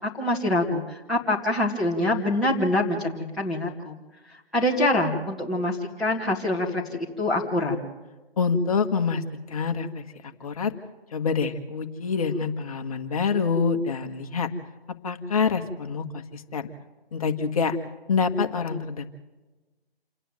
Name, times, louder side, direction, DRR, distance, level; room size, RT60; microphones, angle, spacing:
voice 1, 0.0-4.0 4.5-6.8 7.2-7.8, left 1 dB, ahead, -7 dB, 1.9 m, -25 dB
voice 2, 8.4-10.0 10.4-10.7 11.1-14.5 15.0-16.7 17.1-17.8 18.1-19.1, left 5 dB, 35° left, 7 dB, 1.5 m, -26 dB
28.5 x 10.0 x 9.3 m, 1.1 s
figure-of-eight pair, 155°, 31 cm